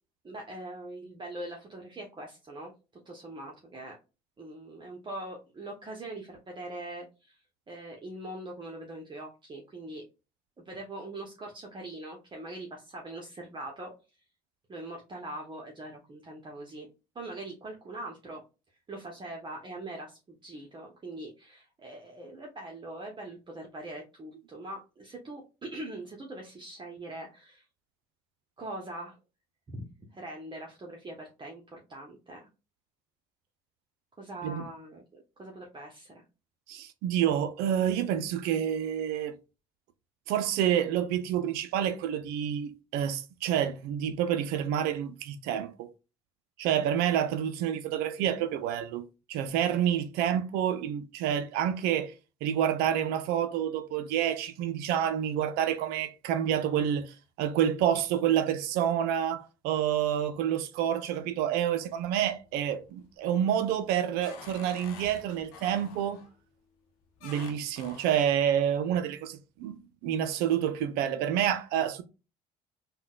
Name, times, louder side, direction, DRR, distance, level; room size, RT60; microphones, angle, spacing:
voice 1, 0.2-2.7 3.1-4.0 4.4-7.4 7.7-10.0 10.6-13.9 14.7-16.9 17.1-18.4 18.9-27.6 28.6-29.2 29.7-32.5 34.2-36.2, right 1 dB, 30° right, 0.9 m, -42 dB
voice 2, 36.7-39.3 40.3-45.9 46.6-52.1 52.4-66.2 67.2-69.8 70.0-72.0, right 9 dB, 70° right, 0.5 m, -28 dB
sound 1, 61.8-62.4 62.9-63.3 63.7-66.3 67.2-68.3, left 6 dB, 75° left, 0.7 m, -48 dB
3.7 x 2.2 x 2.3 m
hypercardioid pair, 60°, 17 cm